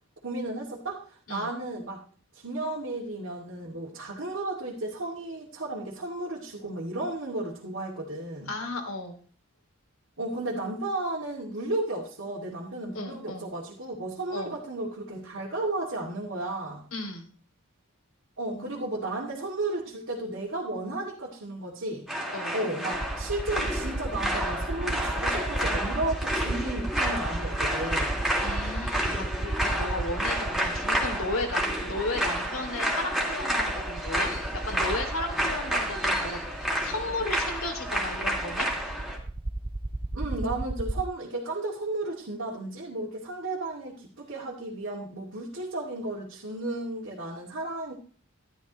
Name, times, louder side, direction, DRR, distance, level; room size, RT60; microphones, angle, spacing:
voice 1, 0.2-2.0 2.3-8.5 10.2-16.8 18.4-22.1 22.5-28.2 40.1-47.9, right 2 dB, 70° right, -5 dB, 2.6 m, -33 dB
voice 2, 8.5-9.2 12.9-13.5 14.3-14.5 16.9-17.3 18.5-18.7 22.3-22.6 28.4-38.7, left 2 dB, 80° left, 4 dB, 2.7 m, -34 dB
sound 1, 22.1-39.2, equal, 5° right, 2.5 m, -30 dB
sound 2, 22.9-41.0, right 2 dB, 25° right, 0.5 m, -35 dB
12.5 x 12.5 x 3.1 m, 0.43 s
head